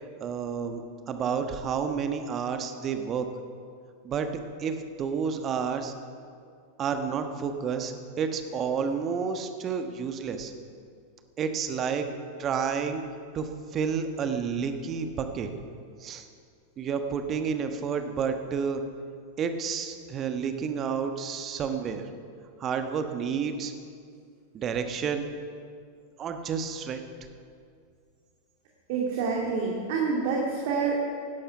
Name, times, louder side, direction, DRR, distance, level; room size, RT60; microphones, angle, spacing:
voice 1, 0.2-3.3 4.0-4.3 4.6-5.9 6.8-10.5 11.4-12.1 12.4-13.0 13.3-15.5 16.0-16.2 16.8-18.8 19.4-22.1 22.6-23.7 24.5-25.3 26.2-27.0, right 6 dB, 30° right, 7 dB, 1.2 m, -30 dB
voice 2, 28.9-30.9, right 5 dB, 50° right, -1 dB, 2.2 m, -27 dB
17.5 x 12.0 x 5.7 m, 2.3 s
figure-of-eight pair, 90°, 0 cm